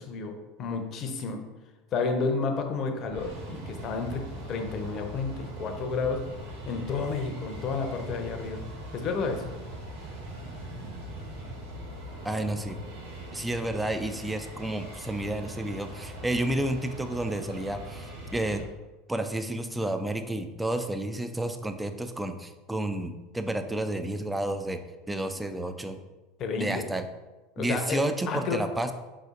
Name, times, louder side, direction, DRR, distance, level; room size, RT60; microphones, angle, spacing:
voice 1, 0.0-1.4 1.9-6.2 6.7-8.6 8.9-9.4 26.4-26.9 27.6-28.0 28.3-28.6, left 4 dB, 45° left, 5 dB, 0.7 m, -31 dB
sound 1, 3.0-18.6, right 1 dB, 75° right, 1.2 m, -41 dB
voice 2, 12.2-12.8 13.3-18.6 19.1-24.8 25.1-26.0 26.6-27.0 27.6-28.9, right 1 dB, 10° right, 8 dB, 0.4 m, -31 dB
4.9 x 4.0 x 2.5 m, 1.1 s
figure-of-eight pair, 75°, 0 cm